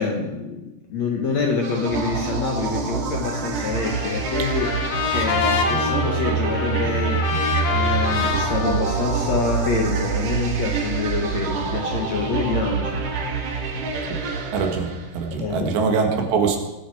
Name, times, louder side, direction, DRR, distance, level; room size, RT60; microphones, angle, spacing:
voice 1, 0.0-13.7 15.4-15.7, left 4 dB, 60° left, 1 dB, 2.0 m, -26 dB
sound 1, 1.6-15.3, right 5 dB, 60° right, 3.0 m, -26 dB
Trumpet, 3.8-10.0, left 6 dB, 75° left, 3.3 m, -27 dB
voice 2, 14.5-14.9 15.2-16.6, right 5 dB, 80° right, 3 dB, 4.0 m, -22 dB
19.5 x 10.0 x 4.9 m, 1.0 s
omnidirectional pair, 4.9 m